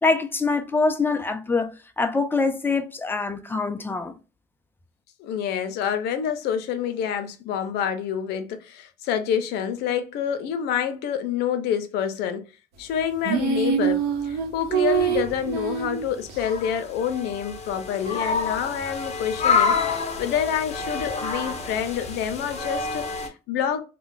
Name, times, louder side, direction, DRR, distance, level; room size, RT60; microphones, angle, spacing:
voice 1, 0.0-4.1, left 3 dB, 10° left, 0.5 m, -24 dB
voice 2, 5.2-12.5 12.8-19.7 20.2-23.8, left 8 dB, 80° left, 0.6 m, -27 dB
sound 1, 13.2-16.4, right 7 dB, 75° right, 0.9 m, -24 dB
sound 2, 14.9-15.5 16.4-23.3, left 5 dB, 40° left, 0.8 m, -28 dB
2.4 x 2.2 x 3.8 m
cardioid pair, 110°, 17 cm